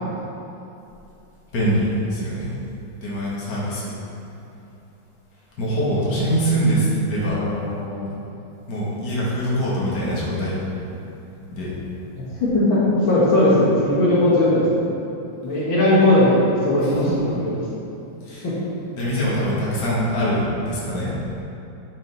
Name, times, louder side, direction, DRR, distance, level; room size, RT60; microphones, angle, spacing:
voice 1, 1.5-2.5 3.0-3.9 5.6-7.4 8.7-10.6 11.5-11.7 16.8-17.2 18.2-18.5 19.0-21.1, equal, 55° left, -7 dB, 2.2 m, -23 dB
voice 2, 7.3-8.1 12.2-12.8 13.1-14.8 15.4-17.6 18.4-18.5, left 1 dB, 80° left, -8 dB, 2.4 m, -19 dB
10.5 x 5.3 x 4.0 m, 2.9 s
omnidirectional pair, 2.1 m